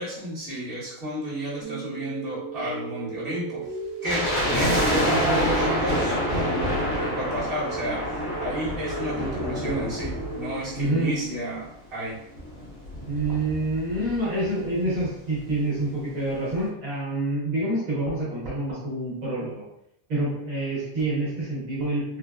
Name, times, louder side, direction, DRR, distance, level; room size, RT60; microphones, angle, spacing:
voice 1, 0.0-3.6 4.0-12.2, right 1 dB, 45° right, -10 dB, 1.4 m, -32 dB
sound 1, 1.6-11.6, right 3 dB, 10° right, 1.0 m, -37 dB
sound 2, 4.0-11.3 11.6-11.7 12.4-14.2 14.4-14.5 14.8-15.1 15.5-15.6, equal, 80° left, 1.4 m, -27 dB
voice 2, 10.8-11.1 13.1-19.5 20.1-22.0, right 2 dB, 75° right, -7 dB, 1.5 m, -27 dB
3.9 x 2.1 x 2.3 m, 0.78 s
omnidirectional pair, 1.4 m